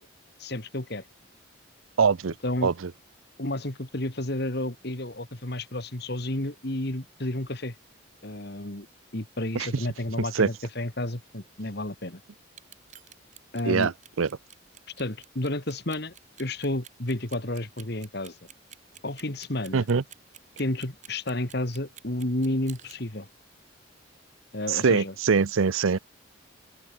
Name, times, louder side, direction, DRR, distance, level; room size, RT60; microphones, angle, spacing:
voice 1, 0.4-1.0 2.4-2.7 3.4-7.7 8.2-8.9 9.1-12.2 13.5-13.9 15.0-16.1 16.4-18.4 19.0-19.9 20.6-23.3 24.5-25.1, left 1 dB, 55° left, 2.3 m, -31 dB
voice 2, 2.0-2.3 2.6-2.7 9.5-9.7 10.3-10.5 13.7-13.9 14.2-14.3 19.7-20.0 24.7-26.0, right 5 dB, 85° right, 0.6 m, -22 dB
Clock, 12.5-23.0, right 10 dB, 35° right, 6.9 m, -49 dB
open air
head